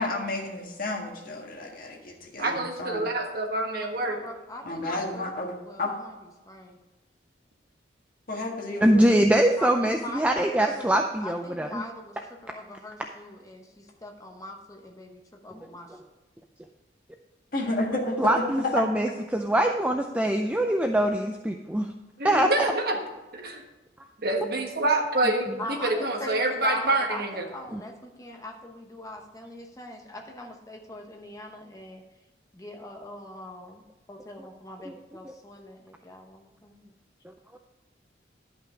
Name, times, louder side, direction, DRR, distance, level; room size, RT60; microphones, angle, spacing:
voice 1, 0.0-3.1 4.6-5.9 8.3-9.0 17.5-18.8, left 2 dB, 50° left, 0 dB, 1.7 m, -31 dB
voice 2, 2.4-4.2 22.2-23.0 23.3-23.6 24.2-27.5, right 2 dB, 55° right, 3 dB, 1.3 m, -27 dB
voice 3, 4.0-6.1 6.4-6.8 9.6-12.2 12.4-15.9 25.6-32.0 32.5-33.8 34.1-36.9, left 1 dB, 20° left, 2 dB, 1.1 m, -41 dB
voice 4, 8.8-11.8 15.5-16.0 18.2-21.9 22.2-22.7 27.7-27.8 34.9-35.0 35.2-35.3, right 1 dB, 10° right, 4 dB, 0.4 m, -23 dB
11.0 x 5.7 x 5.0 m, 1.1 s
head